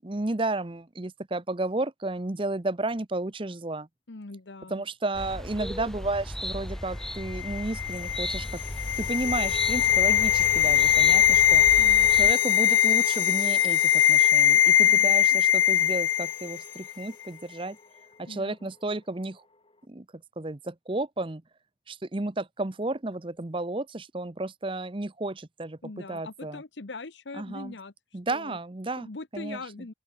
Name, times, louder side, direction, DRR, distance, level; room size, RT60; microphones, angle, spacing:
voice 1, 0.0-3.9 4.7-8.6 9.0-11.6 12.1-17.8 18.2-19.4 19.9-20.0 20.4-21.4 21.9-26.6 27.4-27.7 28.1-29.1 29.3-29.6, right 2 dB, 25° right, 0.8 m, -32 dB
voice 2, 4.1-4.8 11.7-12.4 14.8-15.4 18.3-18.6 25.8-28.6 29.0-29.9, left 3 dB, 70° left, 1.1 m, -42 dB
sound 1, 5.1-12.3, equal, ahead, 0.4 m, -36 dB
sound 2, 7.4-16.6 16.9-17.0, left 11 dB, 85° left, 0.5 m, -21 dB
sound 3, 8.5-19.9, left 2 dB, 30° left, 1.6 m, -45 dB
open air
head